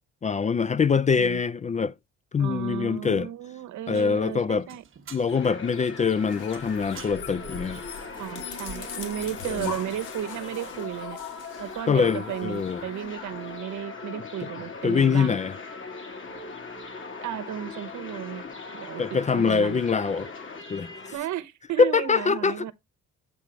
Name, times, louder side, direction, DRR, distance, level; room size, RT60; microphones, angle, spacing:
voice 1, 0.2-1.9 2.3-3.3 3.9-4.7 5.1-7.8 9.4-9.7 11.9-12.9 14.8-15.5 19.0-20.3 20.7-20.9 21.8-22.7, left 5 dB, 25° left, 0.3 m, -24 dB
voice 2, 2.4-4.8 8.2-11.2 11.6-15.4 17.2-18.4 18.7-19.1 19.3-19.8 21.1-22.7, right 12 dB, 75° right, 1.0 m, -34 dB
sound 1, 3.9-10.2, right 7 dB, 45° right, 1.1 m, -52 dB
sound 2, 5.3-21.2, left 4 dB, 40° left, 2.2 m, -40 dB
sound 3, 6.1-13.1, left 6 dB, 85° left, 1.8 m, -41 dB
8.4 x 3.0 x 5.0 m
cardioid pair, 90°, 30 cm